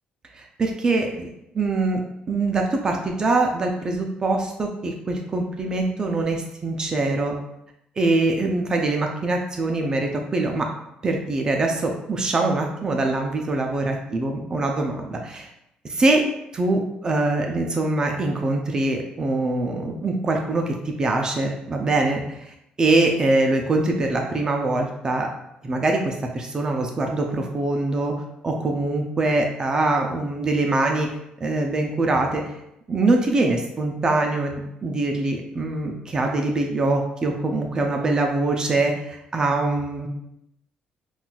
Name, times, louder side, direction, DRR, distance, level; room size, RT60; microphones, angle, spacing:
voice 1, 0.3-7.4 8.0-10.7 11.0-15.5 15.8-16.2 16.5-25.3 25.6-28.1 28.4-32.5 32.9-40.1, right 2 dB, 25° right, 2 dB, 0.3 m, -23 dB
3.9 x 2.3 x 2.2 m, 0.82 s
cardioid pair, 130°, 3 cm